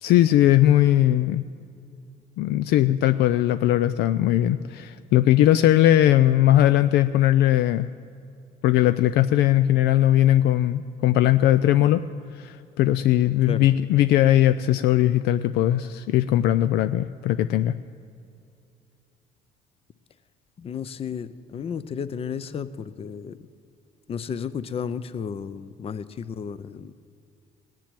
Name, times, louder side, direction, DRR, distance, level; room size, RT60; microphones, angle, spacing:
voice 1, 0.0-1.4 2.4-7.9 8.6-12.0 12.3-17.8, left 13 dB, 80° left, 12 dB, 0.4 m, -19 dB
voice 2, 20.6-23.4 24.1-26.9, left 7 dB, 35° left, 14 dB, 0.6 m, -33 dB
18.0 x 7.5 x 9.1 m, 2.5 s
cardioid pair, 110°, 17 cm